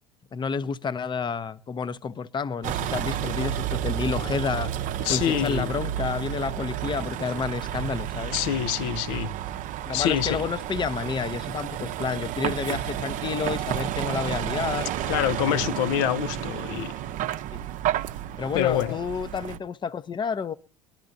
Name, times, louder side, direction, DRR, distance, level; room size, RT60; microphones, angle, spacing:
voice 1, 0.3-4.7 5.1-8.3 9.9-14.9 15.5-15.6 17.5-17.6 18.4-20.5, left 6 dB, 25° left, 0.7 m, -30 dB
Vehicle, 2.6-19.6, right 11 dB, 45° right, 0.7 m, -31 dB
voice 2, 5.0-5.7 8.3-9.3 9.9-10.4 15.1-16.9 18.5-19.0, left 11 dB, 60° left, 0.6 m, -26 dB
23.0 x 12.0 x 2.5 m
figure-of-eight pair, 65°, 18 cm